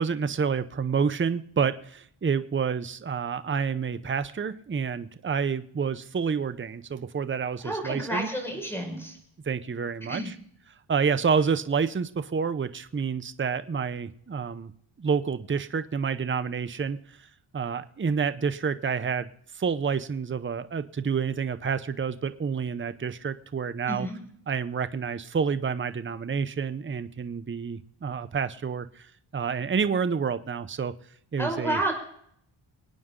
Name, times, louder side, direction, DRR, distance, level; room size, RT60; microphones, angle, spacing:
voice 1, 0.0-8.3 9.5-10.3 10.9-14.7 15.0-17.0 17.5-19.3 19.5-24.1 24.5-29.1 29.3-30.9 31.3-31.8, right 6 dB, 25° right, 11 dB, 0.8 m, -28 dB
voice 2, 7.6-9.2 10.1-10.3 23.9-24.2 31.4-31.9, right 1 dB, 5° left, 3 dB, 5.4 m, -30 dB
25.0 x 9.4 x 3.8 m, 0.68 s
cardioid pair, 105°, 49 cm